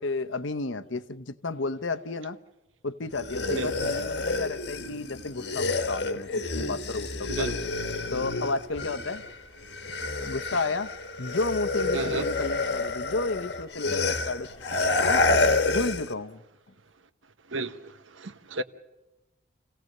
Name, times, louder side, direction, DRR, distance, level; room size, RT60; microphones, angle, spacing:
voice 1, 0.0-2.4 2.8-7.7 8.1-9.2 10.2-10.9 11.2-14.7 15.0-15.3 15.6-16.4, left 3 dB, 75° left, 1.0 m, -32 dB
sound 1, 3.1-9.3 9.6-16.1, left 3 dB, 60° left, 1.4 m, -28 dB
voice 2, 3.5-3.9 7.3-7.5 11.9-12.3 17.5-17.7 18.2-18.6, right 2 dB, 80° right, 1.1 m, -31 dB
28.0 x 17.0 x 6.7 m
head